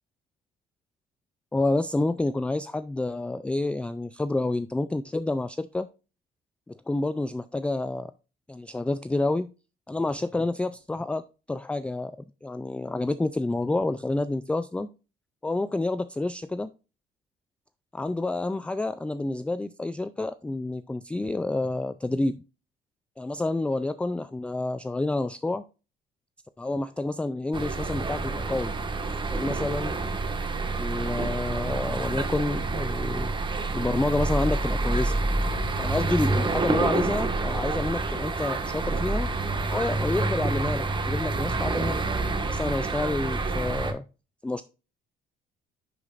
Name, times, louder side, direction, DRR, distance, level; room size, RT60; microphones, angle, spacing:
voice 1, 1.5-5.9 6.7-8.1 8.5-9.5 9.9-12.1 12.4-14.9 15.4-16.7 17.9-22.3 23.2-25.6 26.6-28.7 29.1-30.0 30.7-33.3 33.7-35.1 35.8-39.3 39.7-42.0 42.5-44.0 44.4-44.6, left 2 dB, 5° left, 13 dB, 0.3 m, -29 dB
sound 1, 27.5-43.9, right 3 dB, 30° right, 1.5 m, -28 dB
11.0 x 5.0 x 2.5 m, 0.32 s
cardioid pair, 110°, 17 cm